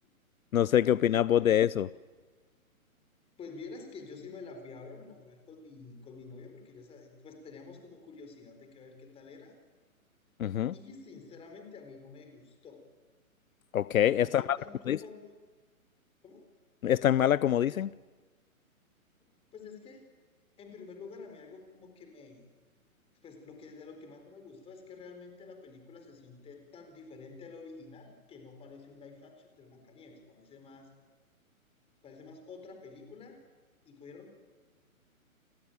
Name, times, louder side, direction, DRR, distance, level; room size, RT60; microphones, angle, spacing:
voice 1, 0.5-1.9 10.4-10.7 13.7-14.6 14.9-15.0 16.8-17.9, left 10 dB, 70° left, 0.7 m, -25 dB
voice 2, 3.4-9.6 10.7-12.8 14.2-15.3 16.2-16.5 19.5-20.1 20.6-22.4 23.2-30.9 32.0-33.4 33.8-34.3, left 4 dB, 15° left, 4.1 m, -49 dB
29.5 x 17.5 x 9.1 m
hypercardioid pair, 145°, 43 cm